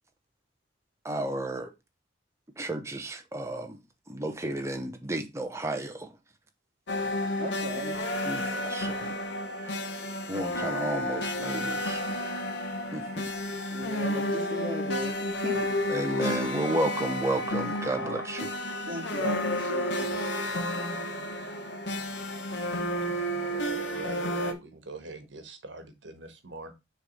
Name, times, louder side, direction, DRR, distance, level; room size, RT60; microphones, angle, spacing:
voice 1, 1.0-1.7 2.6-3.8 4.1-6.1 8.2-9.2 10.3-12.1 12.9-13.3 15.9-18.5, right 1 dB, 15° right, 0.9 m, -32 dB
sound 1, 6.9-24.5, left 1 dB, 70° left, 1.2 m, -31 dB
voice 2, 7.4-8.0 13.7-15.7 17.9-18.2 18.9-20.1, right 1 dB, 50° right, 2.5 m, -36 dB
voice 3, 23.3-26.7, right 3 dB, 80° right, 1.6 m, -41 dB
6.6 x 3.4 x 5.4 m
head